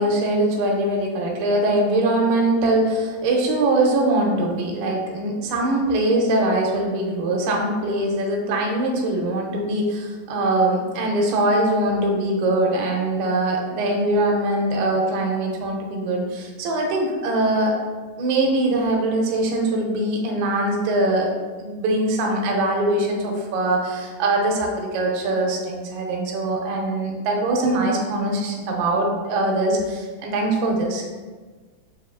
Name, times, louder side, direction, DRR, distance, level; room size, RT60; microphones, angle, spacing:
voice 1, 0.0-17.8 18.2-21.3 21.6-31.1, right 1 dB, 80° right, 0 dB, 2.5 m, -22 dB
7.0 x 2.7 x 2.4 m, 1.4 s
omnidirectional pair, 4.8 m